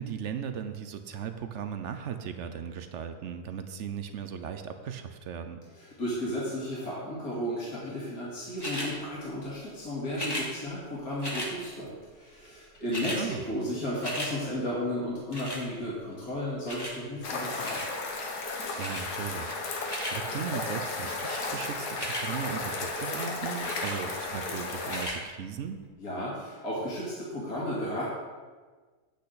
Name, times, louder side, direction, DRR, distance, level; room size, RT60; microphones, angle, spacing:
voice 1, 0.0-5.6 13.1-13.4 18.8-25.8, right 7 dB, 60° right, 8 dB, 0.8 m, -37 dB
voice 2, 5.7-17.8 26.0-28.1, equal, 65° left, -7 dB, 2.7 m, -34 dB
sound 1, 8.6-8.9 10.1-10.5 11.2-11.5 12.5-12.6 12.7-13.2 13.6-14.3 15.3-15.6 16.7-17.0 17.6-17.9 18.8-19.1 19.7-20.2 21.9-22.3 23.6-24.0 24.8-25.2 25.8-25.9, equal, 15° left, 1.6 m, -35 dB
sound 2, 17.2-25.0, left 3 dB, 80° left, 1.7 m, -34 dB
8.7 x 8.4 x 4.0 m, 1.4 s
omnidirectional pair, 1.7 m